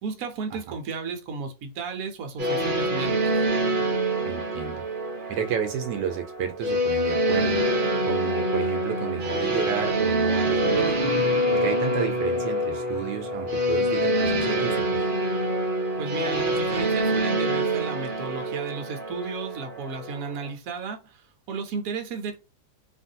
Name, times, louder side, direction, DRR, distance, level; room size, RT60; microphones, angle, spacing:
voice 1, 0.0-3.4 16.0-21.0 21.5-22.4, right 4 dB, 60° right, 1.1 m, -33 dB
sound 1, 2.4-20.5, right 1 dB, 45° right, 0.7 m, -26 dB
voice 2, 4.2-4.8 5.3-7.6 8.0-10.9 11.5-15.0, right 8 dB, 80° right, 1.2 m, -31 dB
3.1 x 2.5 x 2.7 m
omnidirectional pair, 1.9 m